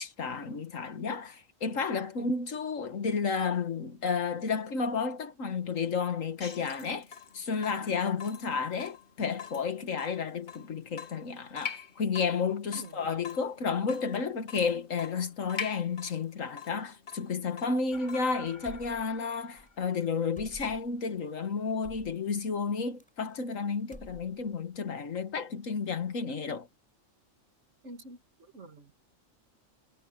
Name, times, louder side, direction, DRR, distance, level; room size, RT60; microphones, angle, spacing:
voice 1, 0.0-7.1 7.3-26.7, left 5 dB, 75° left, 1.9 m, -32 dB
Water tap faucet / Drip, 6.4-18.4, left 6 dB, 55° left, 1.8 m, -44 dB
voice 2, 12.7-13.1 27.8-28.9, right 2 dB, 60° right, 2.4 m, -48 dB
sound 1, 17.9-20.5, left 2 dB, 35° left, 3.4 m, -52 dB
sound 2, 18.6-19.3 19.6-19.7 20.4-21.0 21.8-22.2 23.0-23.5 23.8-24.6, equal, 5° left, 4.7 m, -50 dB
omnidirectional pair, 1.4 m